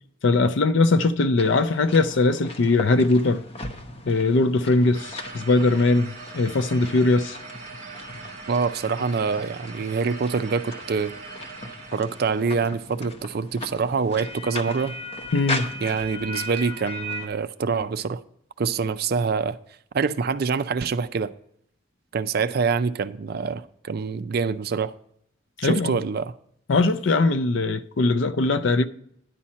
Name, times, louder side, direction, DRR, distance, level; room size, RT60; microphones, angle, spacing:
voice 1, 0.2-3.4 4.1-7.4 15.3-15.7 25.6-26.0 26.7-28.9, left 3 dB, 60° left, 0.5 m, -21 dB
sound 1, 1.4-17.3, left 1 dB, 30° left, 0.8 m, -37 dB
sound 2, 4.9-12.4, right 4 dB, 30° right, 2.6 m, -41 dB
voice 2, 8.5-11.1 11.9-15.0 15.8-18.2 18.6-19.6 19.9-21.3 22.1-24.9 25.6-26.3, right 5 dB, 50° right, 0.4 m, -25 dB
10.5 x 4.3 x 7.4 m
head